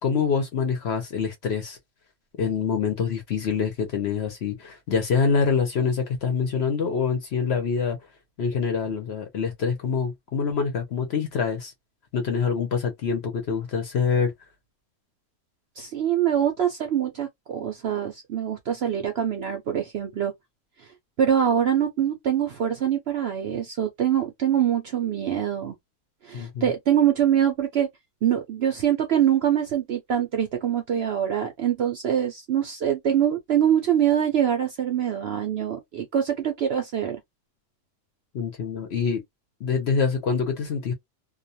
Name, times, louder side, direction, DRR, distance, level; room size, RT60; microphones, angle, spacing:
voice 1, 0.0-1.8 2.4-8.0 8.4-11.7 12.1-14.3 26.3-26.7 38.3-39.2 39.6-40.9, left 5 dB, 60° left, 0.8 m, -25 dB
voice 2, 15.8-20.3 21.2-25.8 26.2-27.9 28.2-37.2, right 9 dB, 60° right, 0.7 m, -24 dB
2.4 x 2.2 x 2.6 m
omnidirectional pair, 1.5 m